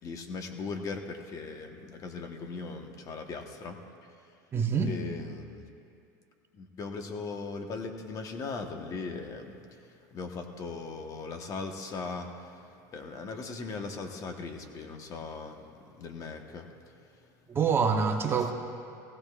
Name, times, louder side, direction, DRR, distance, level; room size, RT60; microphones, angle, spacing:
voice 1, 0.0-3.8 4.9-5.6 6.5-17.3, left 4 dB, 35° left, 4 dB, 1.2 m, -39 dB
voice 2, 4.5-4.9 17.5-18.5, right 6 dB, 25° right, 4 dB, 0.8 m, -26 dB
19.0 x 16.5 x 2.4 m, 2.4 s
supercardioid pair, 125°, 10 cm